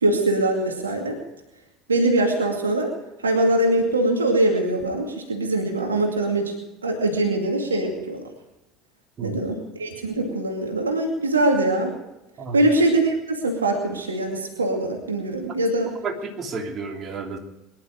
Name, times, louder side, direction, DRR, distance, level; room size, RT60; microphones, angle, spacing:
voice 1, 0.0-1.2 1.9-2.9 3.2-6.6 6.8-8.2 9.2-11.9 12.5-15.9, right 2 dB, 85° right, 3 dB, 2.4 m, -22 dB
voice 2, 16.0-17.4, right 4 dB, 40° right, 2 dB, 3.0 m, -31 dB
23.0 x 11.5 x 4.9 m, 0.97 s
figure-of-eight pair, 65°, 0 cm